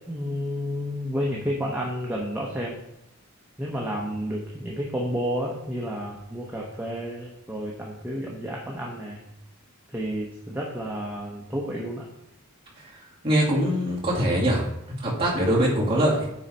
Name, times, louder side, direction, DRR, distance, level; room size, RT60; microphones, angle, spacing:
voice 1, 0.1-2.8 3.6-9.2 9.9-12.1, equal, 10° right, -2 dB, 0.8 m, -31 dB
voice 2, 12.8-16.3, right 1 dB, 25° right, -6 dB, 2.6 m, -23 dB
9.3 x 4.1 x 4.4 m, 0.87 s
head